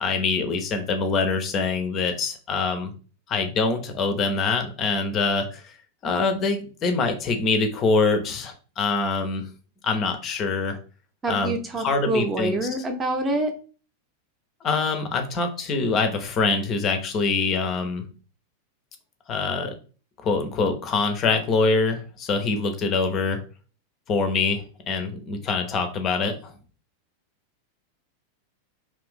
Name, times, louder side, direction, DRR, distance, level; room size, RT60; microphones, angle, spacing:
voice 1, 0.0-2.9 3.3-5.7 6.0-9.5 9.8-10.8 11.3-12.6 14.6-18.0 19.3-19.7 20.2-23.4 24.1-26.5, left 4 dB, 30° left, 6 dB, 0.6 m, -24 dB
voice 2, 11.2-13.5, right 2 dB, 20° right, 4 dB, 0.7 m, -26 dB
2.6 x 2.4 x 3.6 m, 0.37 s
figure-of-eight pair, 90°, 0 cm